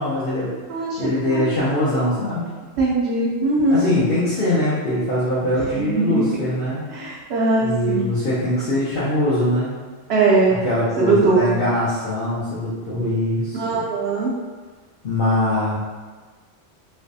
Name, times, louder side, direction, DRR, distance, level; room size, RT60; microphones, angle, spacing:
voice 1, 0.0-0.5 1.0-2.5 3.7-6.8 7.6-9.8 10.5-13.9 15.0-15.7, left 1 dB, 50° left, -10 dB, 0.9 m, -22 dB
voice 2, 0.7-1.5 2.8-3.9 5.7-6.3 6.9-8.2 10.1-10.6 11.0-11.5 13.5-14.3, right 3 dB, 65° right, -7 dB, 0.8 m, -20 dB
3.3 x 3.1 x 2.6 m, 1.4 s
omnidirectional pair, 1.2 m